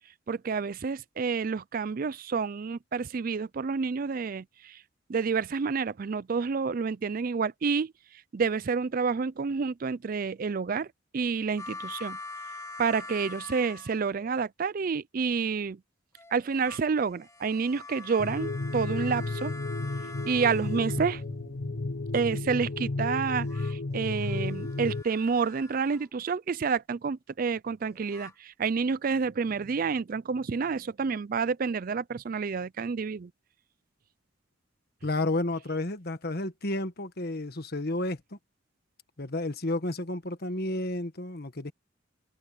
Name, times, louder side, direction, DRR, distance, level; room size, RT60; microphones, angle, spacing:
voice 1, 0.3-4.8 5.1-10.9 11.1-12.2 12.8-15.8 16.3-19.5 20.2-21.2 22.1-33.3, right 5 dB, 45° right, 0.4 m, -29 dB
sound 1, 11.6-14.4 16.2-21.4 23.2-26.1 27.8-28.3, left 3 dB, 15° left, 1.2 m, -45 dB
sound 2, 18.2-25.0, left 3 dB, 65° left, 0.8 m, -33 dB
voice 2, 35.0-38.2 39.2-41.7, left 2 dB, 50° left, 1.5 m, -31 dB
head